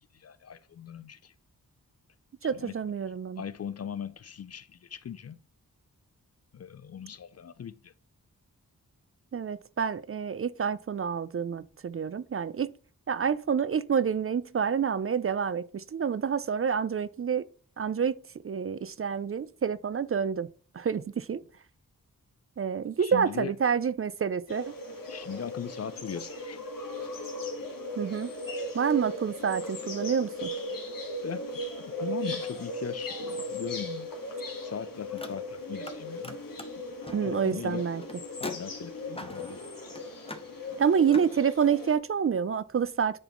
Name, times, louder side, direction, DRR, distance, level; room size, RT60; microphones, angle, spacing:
voice 1, 0.0-1.3 2.5-2.8 3.4-5.4 6.5-7.9 23.0-23.5 25.1-26.6 31.2-31.5 31.8-34.1 34.6-36.4 37.2-37.9 38.4-40.0, left 8 dB, 45° left, 0.4 m, -39 dB
voice 2, 2.4-3.4 9.3-12.7 13.1-17.4 17.8-18.1 18.4-20.5 20.7-21.4 22.6-24.7 28.0-28.3 28.7-30.5 37.1-38.0 40.8-43.2, right 7 dB, 40° right, 0.4 m, -28 dB
sound 1, 24.5-41.9, left 1 dB, 65° left, 1.6 m, -37 dB
Car, 35.2-36.0 36.2-41.3, left 2 dB, 15° left, 0.9 m, -44 dB
9.9 x 4.0 x 3.0 m
cardioid pair, 45°, 36 cm